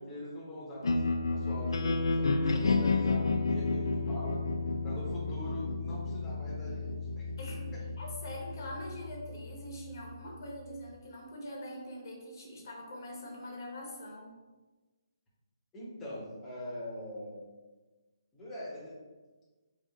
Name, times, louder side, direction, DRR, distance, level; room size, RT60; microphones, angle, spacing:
voice 1, 0.0-4.4 4.8-7.3 15.7-17.4 18.3-19.0, left 1 dB, 10° left, -7 dB, 1.0 m, -42 dB
sound 1, 0.8-10.9, left 3 dB, 85° left, 0.4 m, -32 dB
voice 2, 8.0-14.4, left 1 dB, 45° left, -1 dB, 0.9 m, -43 dB
3.5 x 2.5 x 4.0 m, 1.2 s
hypercardioid pair, 165°, 2 cm